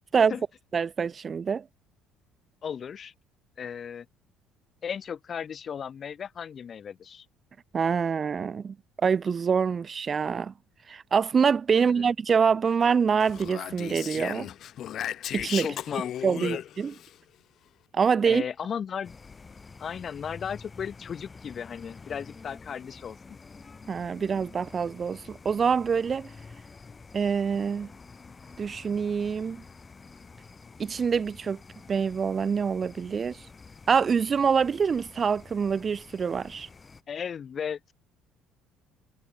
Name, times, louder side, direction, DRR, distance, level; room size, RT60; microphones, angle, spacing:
voice 1, 0.7-1.6 7.7-8.8 9.0-10.5 10.9-14.5 15.3-15.7 16.2-16.9 17.9-18.4 23.9-26.3 27.1-27.9 28.6-29.6 30.8-31.6 31.9-33.4 33.9-36.7, right 6 dB, 35° right, 0.7 m, -25 dB
voice 2, 2.6-3.1 3.6-4.1 4.8-7.3 11.8-12.1 15.6-16.6 18.3-19.1 19.8-23.2 37.1-37.9, left 7 dB, 40° left, 2.3 m, -35 dB
Speech, 13.2-17.1, left 11 dB, 55° left, 0.5 m, -35 dB
sound 1, 19.0-37.0, left 4 dB, 25° left, 2.7 m, -48 dB
cardioid pair, 105°, 0 cm